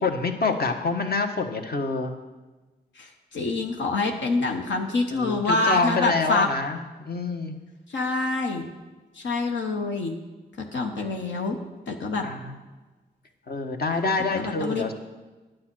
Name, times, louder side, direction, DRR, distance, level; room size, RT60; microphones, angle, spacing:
voice 1, 0.0-2.1 5.1-7.6 12.2-12.6 13.5-14.9, left 3 dB, 55° left, 5 dB, 1.3 m, -26 dB
voice 2, 3.0-6.5 7.9-8.7 9.2-10.2 10.7-11.6 11.9-12.3 14.3-14.9, left 3 dB, 80° left, 2 dB, 1.0 m, -26 dB
9.6 x 7.8 x 6.1 m, 1.2 s
supercardioid pair, 40°, 19 cm